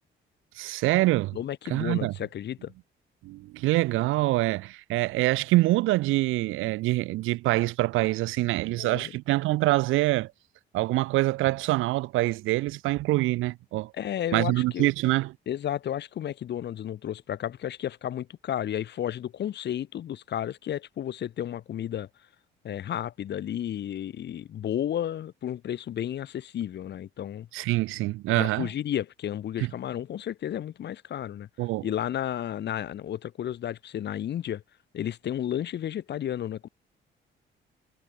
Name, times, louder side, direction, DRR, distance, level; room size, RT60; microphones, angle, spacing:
voice 1, 0.6-1.4 1.7-2.1 3.2-10.3 10.7-13.9 14.3-15.3 27.5-28.7 29.6-29.7 31.6-31.9, right 18 dB, 85° right, 0.5 m, -25 dB
voice 2, 1.3-2.7 8.8-9.1 13.9-14.9 15.5-22.1 22.6-27.5 28.3-31.5 31.8-34.6 34.9-36.7, left 10 dB, 60° left, 1.0 m, -32 dB
cardioid pair, 90°, 20 cm